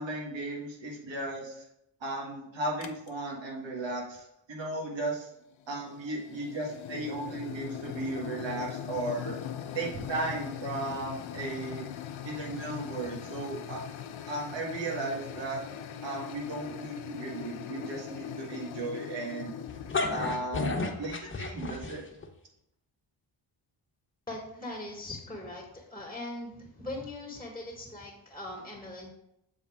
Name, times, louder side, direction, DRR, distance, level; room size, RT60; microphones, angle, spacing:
voice 1, 0.0-1.6 2.0-5.3 5.7-9.4 9.7-11.9 12.2-13.8 14.3-15.6 16.0-19.5 20.1-22.0, right 2 dB, 70° right, -2 dB, 1.7 m, -35 dB
sound 1, 2.8-3.1 5.4-20.3, left 9 dB, 75° left, 0.6 m, -41 dB
sound 2, 19.7-22.3, left 3 dB, 25° left, 0.9 m, -32 dB
voice 2, 24.3-29.1, left 2 dB, 10° left, -2 dB, 1.5 m, -40 dB
7.5 x 4.1 x 3.5 m, 0.79 s
cardioid pair, 75°, 46 cm